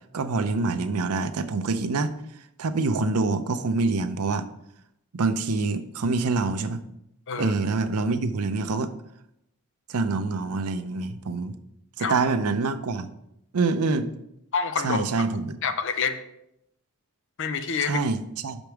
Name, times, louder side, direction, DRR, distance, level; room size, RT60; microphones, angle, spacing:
voice 1, 0.1-2.1 2.6-4.5 5.1-6.8 7.4-8.9 9.9-11.6 12.0-13.1 13.5-14.1 14.8-15.6 17.8-18.6, right 3 dB, 90° right, 10 dB, 0.6 m, -26 dB
voice 2, 14.5-15.1 15.6-16.2 17.4-18.0, left 5 dB, 55° left, 8 dB, 0.6 m, -27 dB
6.1 x 5.2 x 4.6 m, 0.78 s
head